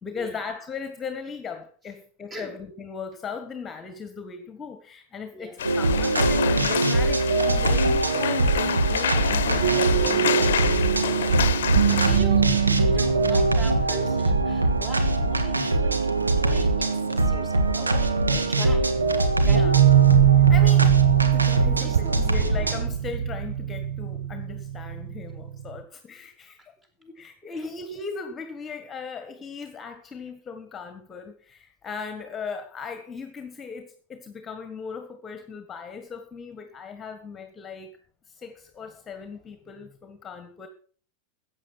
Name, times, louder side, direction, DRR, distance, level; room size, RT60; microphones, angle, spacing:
voice 1, 0.0-10.8 19.4-19.8 20.5-26.7 27.0-38.0 38.3-40.7, left 5 dB, 20° left, 9 dB, 1.7 m, -38 dB
voice 2, 5.3-5.7 11.1-19.0 19.4-19.8 21.8-22.6 27.5-27.7, right 1 dB, 20° right, 5 dB, 4.5 m, -41 dB
sound 1, 5.6-12.2, left 9 dB, 65° left, 0.9 m, -28 dB
sound 2, 5.6-22.8, right 2 dB, 80° right, 1.7 m, -23 dB
sound 3, 9.6-16.4 18.1-18.2 18.7-25.8, right 11 dB, 65° right, 0.8 m, -23 dB
14.5 x 8.8 x 6.3 m, 0.43 s
figure-of-eight pair, 90°, 0 cm